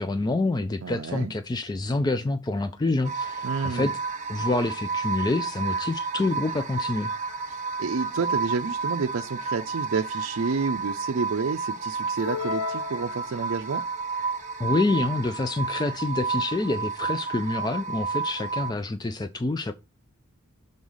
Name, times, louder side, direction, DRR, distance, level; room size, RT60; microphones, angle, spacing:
voice 1, 0.0-4.0 4.3-7.1 14.6-19.7, left 2 dB, 20° left, 0.4 m, -27 dB
voice 2, 0.8-1.3 3.4-3.9 7.5-13.8, right 4 dB, 60° right, 0.5 m, -29 dB
sound 1, 3.0-18.7, right 4 dB, 35° right, 0.8 m, -31 dB
sound 2, 12.2-13.8, left 6 dB, 85° left, 0.4 m, -34 dB
6.4 x 4.0 x 5.4 m
head